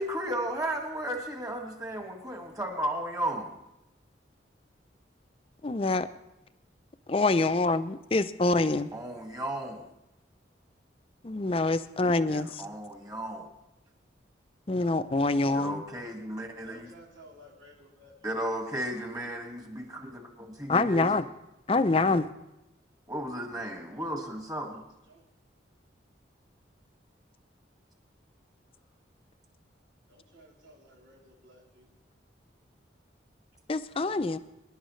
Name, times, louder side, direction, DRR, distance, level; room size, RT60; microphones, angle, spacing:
voice 1, 0.0-3.5 8.9-9.9 12.3-13.5 15.5-16.9 18.2-21.1 23.1-24.8, right 1 dB, 20° right, 2 dB, 1.8 m, -34 dB
voice 2, 5.6-6.1 7.1-8.9 11.2-12.6 14.7-15.8 20.7-21.2 21.7-22.3 33.7-34.4, left 3 dB, 30° left, 12 dB, 0.5 m, -25 dB
voice 3, 16.6-18.3 24.7-25.2 30.1-31.9, equal, 90° right, -4 dB, 3.3 m, -55 dB
25.5 x 11.0 x 3.2 m, 0.90 s
head